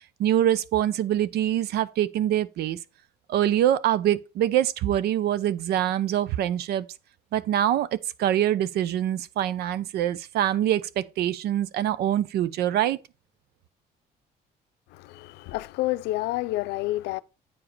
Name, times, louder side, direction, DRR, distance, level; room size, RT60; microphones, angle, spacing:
voice 1, 0.2-2.8 3.3-6.9 7.3-13.0, right 11 dB, 70° right, 0.7 m, -24 dB
voice 2, 14.9-17.2, left 18 dB, 90° left, 0.5 m, -29 dB
8.7 x 5.0 x 4.6 m
cardioid pair, 110°, 17 cm